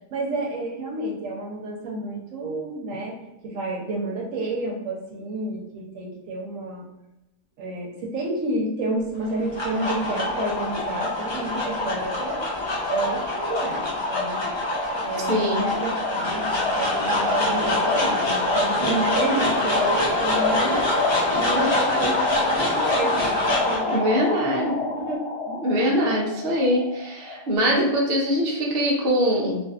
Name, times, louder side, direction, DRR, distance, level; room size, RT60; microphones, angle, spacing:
voice 1, 0.1-3.1 3.4-6.8 7.6-12.4 12.9-13.8 14.1-14.4 15.0-20.8 21.2-24.2 24.8-25.2, right 2 dB, 85° right, -1 dB, 1.0 m, -30 dB
sound 1, 9.2-27.6, left 2 dB, 30° left, 0.6 m, -25 dB
voice 2, 15.3-15.7 20.7-20.8 23.9-24.8 25.5-29.6, equal, 60° right, -2 dB, 0.8 m, -23 dB
2.5 x 2.5 x 2.3 m, 0.93 s
omnidirectional pair, 1.3 m